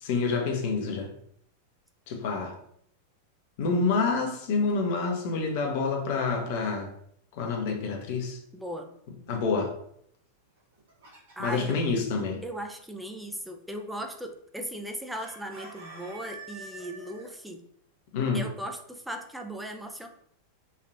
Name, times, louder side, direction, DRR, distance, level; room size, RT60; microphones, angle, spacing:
voice 1, 0.0-1.1 2.1-2.6 3.6-6.9 7.4-8.4 9.3-9.7 11.4-12.4 18.1-18.4, left 4 dB, 50° left, 2 dB, 0.6 m, -27 dB
voice 2, 8.5-8.9 11.4-11.8 12.4-17.6 18.3-20.1, right 1 dB, 5° right, 4 dB, 0.4 m, -37 dB
Chicken rooster, 10.6-11.8 15.2-17.3, right 3 dB, 60° right, 1.0 m, -46 dB
3.1 x 2.5 x 2.4 m, 0.68 s
figure-of-eight pair, 90°, 0 cm